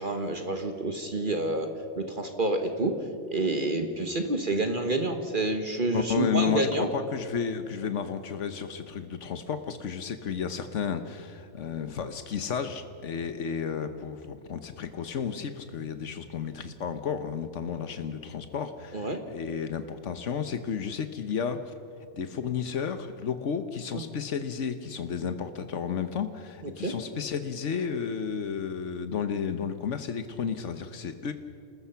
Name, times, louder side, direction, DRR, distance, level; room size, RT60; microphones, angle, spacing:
voice 1, 0.0-1.7 2.0-2.9 3.3-6.9 18.9-19.2 23.9-24.0 26.6-26.9, right 2 dB, 45° right, 5 dB, 1.6 m, -28 dB
voice 2, 5.9-21.7 22.1-31.3, left 7 dB, 85° left, 9 dB, 1.3 m, -32 dB
29.0 x 20.0 x 5.7 m, 2.7 s
omnidirectional pair, 1.2 m